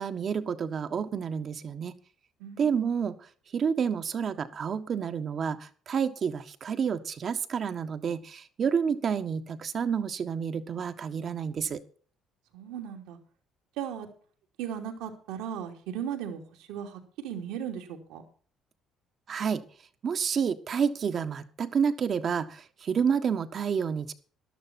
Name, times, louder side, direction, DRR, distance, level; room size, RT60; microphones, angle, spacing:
voice 1, 0.0-1.9 2.6-3.2 3.5-11.8 19.3-19.6 20.0-24.1, right 7 dB, 50° right, 9 dB, 1.5 m, -29 dB
voice 2, 2.4-2.8 12.5-13.2 13.8-14.1 14.6-16.4 16.7-18.2, right 9 dB, 85° right, 4 dB, 2.9 m, -36 dB
13.0 x 12.0 x 4.3 m, 0.43 s
supercardioid pair, 75°, 0 cm